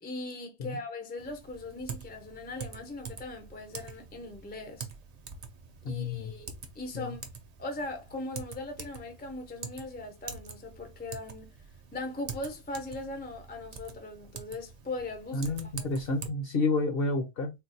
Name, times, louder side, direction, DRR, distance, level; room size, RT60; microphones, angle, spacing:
voice 1, 0.0-4.9 5.9-7.2 7.6-11.5 11.9-15.9, left 2 dB, 10° left, 0.5 m, -39 dB
Typing, 1.2-16.3, right 5 dB, 45° right, 0.5 m, -45 dB
voice 2, 5.8-6.3 6.9-7.1 15.3-17.5, left 3 dB, 55° left, 0.9 m, -30 dB
3.8 x 2.3 x 2.6 m
omnidirectional pair, 1.3 m